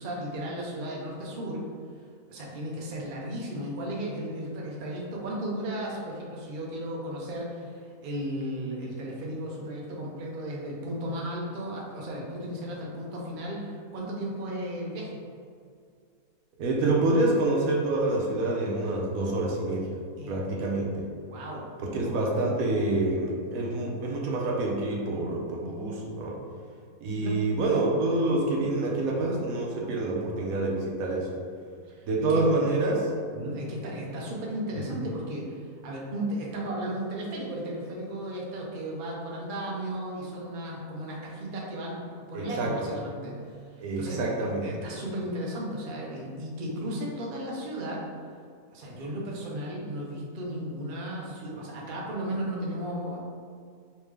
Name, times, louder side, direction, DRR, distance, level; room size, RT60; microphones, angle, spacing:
voice 1, 0.0-1.7 2.3-15.2 20.2-20.4 21.2-21.7 22.0-22.2 27.2-27.4 27.7-27.8 31.9-32.4 33.3-44.2 44.6-48.0 48.7-53.2, right 1 dB, 50° right, -3 dB, 0.6 m, -35 dB
voice 2, 16.6-19.9 20.3-21.1 21.8-26.4 27.0-31.3 32.1-33.1 34.9-35.0 42.3-42.9 43.8-44.7, right 2 dB, 70° right, -2 dB, 1.0 m, -27 dB
3.5 x 3.2 x 3.2 m, 2.2 s
omnidirectional pair, 1.6 m